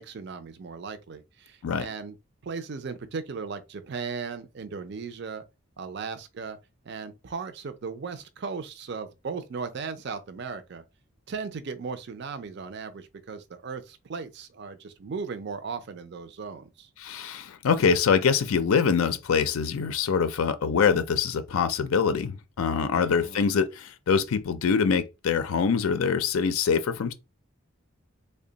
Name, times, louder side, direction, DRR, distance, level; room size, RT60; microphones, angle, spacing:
voice 1, 0.0-2.2 2.4-5.4 5.8-6.6 6.8-10.8 11.3-16.9 22.9-23.4, right 5 dB, 55° right, 0.4 m, -37 dB
voice 2, 17.0-27.1, left 6 dB, 80° left, 0.4 m, -24 dB
3.4 x 2.2 x 3.8 m
head